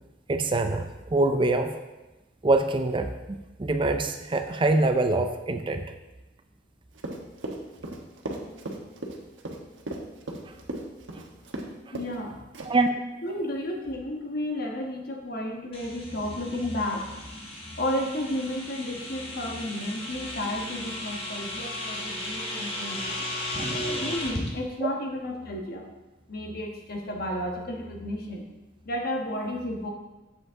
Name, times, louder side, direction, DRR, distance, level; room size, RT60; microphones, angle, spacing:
voice 1, 0.3-1.8 2.4-5.9 10.4-10.6 11.1-11.2 11.9-12.0 12.6-12.9 24.8-24.9, right 2 dB, 25° right, 7 dB, 0.5 m, -25 dB
Run, 7.0-11.7 11.9-12.2 12.5-12.9, right 1 dB, 90° right, 1.2 m, -36 dB
voice 2, 11.9-12.4 13.2-23.1 24.0-25.9 26.3-28.5 28.8-29.9, left 1 dB, 55° left, 1 dB, 1.4 m, -32 dB
sound 1, 15.7-24.5, left 1 dB, 30° left, 1.5 m, -35 dB
8.0 x 7.8 x 3.6 m, 1.1 s
head